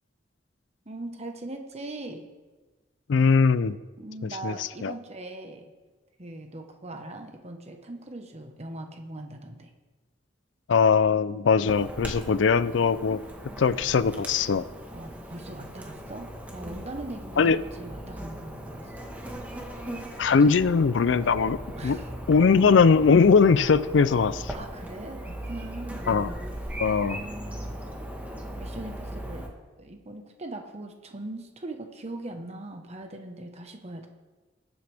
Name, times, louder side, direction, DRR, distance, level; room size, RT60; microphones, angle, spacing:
voice 1, 0.8-2.3 4.0-5.7 6.2-9.7 14.9-18.9 21.8-22.1 24.5-26.2 27.0-27.8 28.5-29.4 29.8-34.1, right 2 dB, 35° right, 4 dB, 1.2 m, -40 dB
voice 2, 3.1-3.8 4.4-4.5 4.8-4.9 10.7-13.2 13.6-14.7 17.4-17.6 20.2-21.6 21.8-22.0 22.3-24.5 26.1-26.3 26.8-27.2, left 5 dB, 70° left, 16 dB, 0.4 m, -20 dB
Chirp tweet / Buzz, 11.7-29.5, right 1 dB, 10° right, 1.4 m, -38 dB
20.5 x 7.8 x 3.5 m, 1.3 s
head